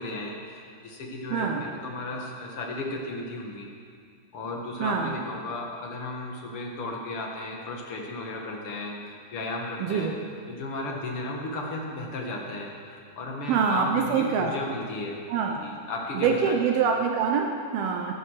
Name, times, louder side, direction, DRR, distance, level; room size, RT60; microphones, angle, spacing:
voice 1, 0.0-3.7 4.3-8.9 9.3-10.1 10.5-15.2 15.6-16.6, left 2 dB, 50° left, 0 dB, 1.7 m, -34 dB
voice 2, 1.3-1.7 4.8-5.1 9.8-10.2 13.5-14.5 15.3-15.6 16.2-18.1, right 6 dB, 75° right, 3 dB, 2.5 m, -25 dB
14.0 x 13.0 x 6.6 m, 2.2 s
omnidirectional pair, 5.0 m